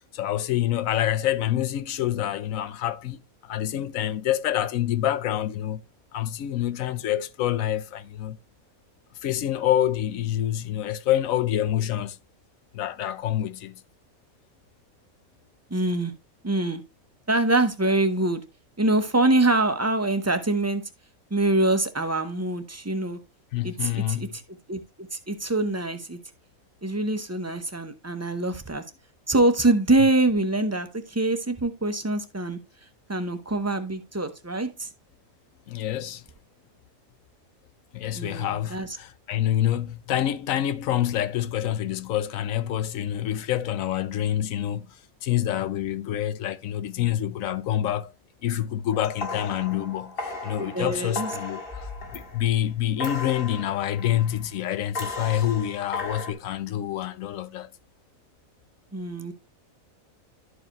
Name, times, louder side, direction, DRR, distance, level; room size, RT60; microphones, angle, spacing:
voice 1, 0.1-5.8 6.1-8.4 9.2-12.2 12.7-13.8 23.5-24.3 35.7-36.2 37.9-45.0 45.2-48.1 48.4-51.9 52.1-57.7, left 12 dB, 75° left, 1.0 m, -27 dB
voice 2, 15.7-16.1 16.4-16.8 17.3-18.4 18.8-20.8 21.3-23.2 23.6-24.4 24.7-26.2 26.8-28.8 29.3-32.6 33.1-34.9 38.1-39.0 50.6-51.3 58.9-59.3, right 2 dB, 15° right, 0.5 m, -24 dB
sound 1, 48.9-52.6 53.0-54.5 54.9-56.3, left 3 dB, 40° left, 1.9 m, -36 dB
12.0 x 4.8 x 2.9 m
omnidirectional pair, 1.5 m